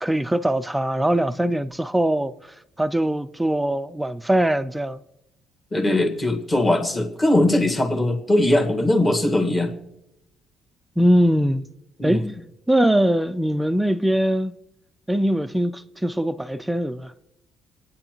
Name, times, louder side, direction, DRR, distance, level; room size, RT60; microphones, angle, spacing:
voice 1, 0.0-2.3 2.8-5.0 11.0-11.6 12.0-12.3 12.7-14.5 15.1-17.1, right 1 dB, 5° right, 0.4 m, -21 dB
voice 2, 5.7-9.7 12.0-12.3, left 1 dB, 15° left, 1.6 m, -20 dB
27.0 x 9.8 x 3.0 m
cardioid pair, 145°, 0 cm